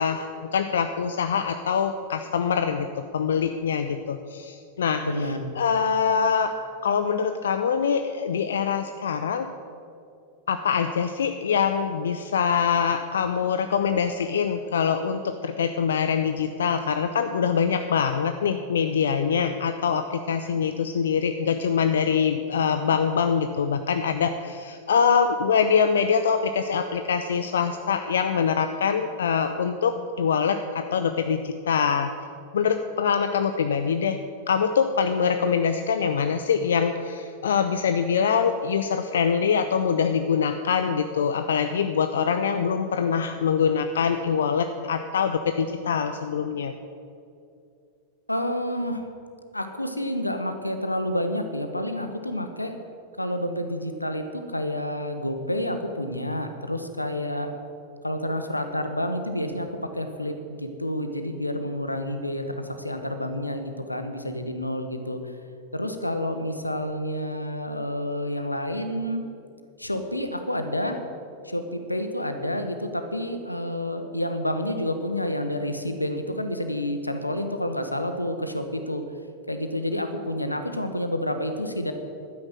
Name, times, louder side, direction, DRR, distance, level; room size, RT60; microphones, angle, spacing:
voice 1, 0.0-2.9 3.1-5.1 5.6-6.5 6.8-9.5 10.5-32.1 32.5-34.2 34.5-46.7, left 6 dB, 65° left, 8 dB, 0.6 m, -24 dB
voice 2, 5.0-5.5 48.3-49.0 49.5-52.8 53.2-57.5 58.0-59.7 59.9-65.2 65.7-69.2 69.8-71.0 71.4-79.0 79.5-81.9, left 1 dB, 85° left, 7 dB, 1.2 m, -29 dB
12.0 x 9.8 x 7.6 m, 2.5 s
figure-of-eight pair, 90°, 0 cm